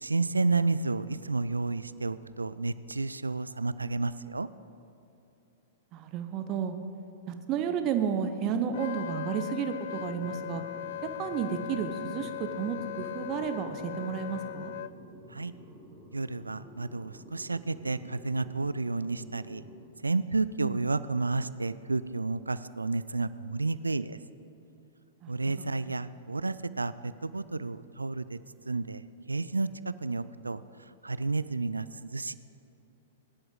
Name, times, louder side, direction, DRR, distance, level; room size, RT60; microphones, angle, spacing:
voice 1, 0.0-4.5 15.3-15.5 16.1-19.6 20.0-24.2 25.3-28.4 28.7-29.0 29.3-30.6 31.0-32.3, right 3 dB, 80° right, 16 dB, 0.4 m, -31 dB
voice 2, 5.9-6.8 7.3-10.6 11.2-14.7 20.6-20.8 25.2-25.7, right 7 dB, 35° right, 8 dB, 0.9 m, -32 dB
Wind instrument woodwind instrument, 8.7-14.9, left 12 dB, 55° left, 0.4 m, -39 dB
sound 1, 9.9-19.8, equal, ahead, 1.9 m, -50 dB
19.5 x 10.5 x 3.9 m, 2.9 s
figure-of-eight pair, 105°, 0 cm